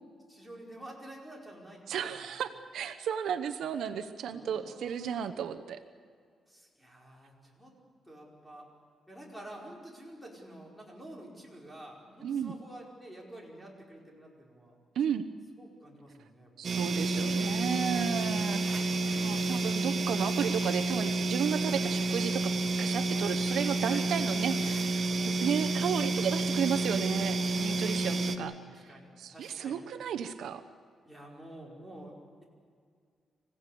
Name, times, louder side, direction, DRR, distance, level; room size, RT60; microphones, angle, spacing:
voice 1, 0.3-2.2 4.3-5.3 6.5-7.7 8.1-8.7 9.1-14.7 15.6-16.5 17.6-18.4 19.1-19.6 23.7-24.1 25.4-25.8 27.7-29.8 31.0-32.1, right 1 dB, ahead, -2 dB, 5.0 m, -49 dB
voice 2, 1.9-5.8 12.2-12.6 14.9-15.3 16.6-18.6 19.1-22.5 22.8-25.0 25.3-30.6, right 8 dB, 80° right, 10 dB, 0.9 m, -33 dB
sound 1, 16.6-28.4, right 2 dB, 45° right, 1.4 m, -30 dB
26.0 x 16.5 x 8.5 m, 2.1 s
cardioid pair, 125°, 0 cm